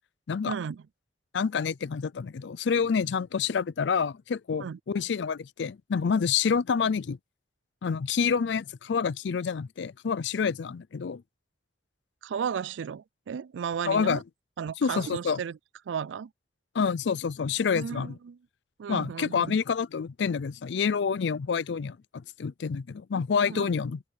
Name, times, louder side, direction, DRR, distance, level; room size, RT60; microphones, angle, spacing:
voice 1, 0.5-0.9 4.5-4.8 12.2-14.2 14.6-15.6 15.9-16.3 17.7-18.4 18.8-19.6 23.5-23.7, right 7 dB, 80° right, 0.4 m, -34 dB
voice 2, 1.3-7.2 7.8-11.2 13.9-14.2 14.8-15.4 16.7-18.1 18.9-24.0, left 6 dB, 65° left, 0.4 m, -28 dB
open air
head